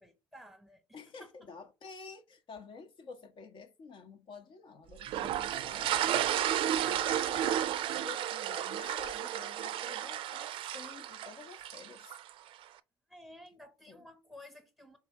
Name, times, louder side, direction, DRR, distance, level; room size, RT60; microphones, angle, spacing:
voice 1, 0.0-1.5 13.1-15.0, left 1 dB, ahead, 1.0 m, -54 dB
voice 2, 0.9-12.1 13.9-14.1, left 4 dB, 50° left, 0.8 m, -50 dB
sound 1, 5.0-12.3, right 11 dB, 55° right, 0.4 m, -33 dB
3.6 x 3.2 x 4.5 m
hypercardioid pair, 60°, 11 cm